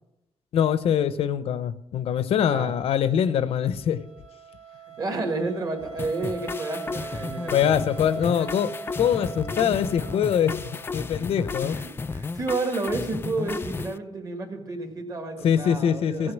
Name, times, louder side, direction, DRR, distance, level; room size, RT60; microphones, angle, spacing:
voice 1, 0.5-4.0 7.5-10.6 10.9-11.8 15.4-16.3, left 8 dB, 75° left, 14 dB, 0.7 m, -23 dB
Wind instrument woodwind instrument, 3.2-11.2, right 4 dB, 15° right, 1.2 m, -41 dB
voice 2, 5.0-8.5 11.6-16.3, right 3 dB, 35° right, 5 dB, 1.8 m, -31 dB
sound 1, 6.0-14.0, left 4 dB, 25° left, 0.3 m, -33 dB
16.0 x 6.5 x 7.3 m, 0.89 s
wide cardioid pair, 165°, 10 cm